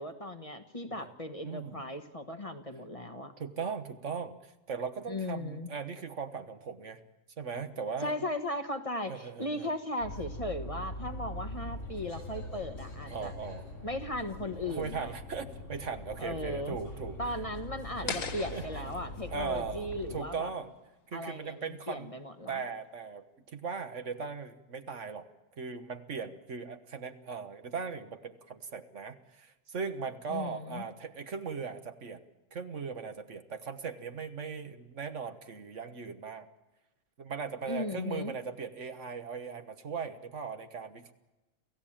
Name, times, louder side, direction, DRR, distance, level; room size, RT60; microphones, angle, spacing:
voice 1, 0.0-3.3 5.1-5.7 8.0-13.3 13.8-15.1 16.2-16.8 17.2-20.5 21.1-22.6 30.3-30.8 37.7-38.4, left 1 dB, 25° left, 6 dB, 1.3 m, -37 dB
voice 2, 1.4-1.9 3.4-7.0 7.4-8.1 9.0-9.7 13.1-13.6 14.6-17.2 18.0-18.2 18.5-18.9 19.3-20.7 21.1-22.1 22.5-25.3 25.6-32.2 32.5-36.5 37.2-41.1, right 5 dB, 60° right, 9 dB, 1.5 m, -38 dB
sound 1, 10.0-20.2, left 1 dB, 60° left, 7.0 m, -42 dB
sound 2, 18.1-21.1, left 6 dB, 90° left, 1.8 m, -41 dB
27.5 x 15.5 x 8.9 m, 1.1 s
omnidirectional pair, 1.4 m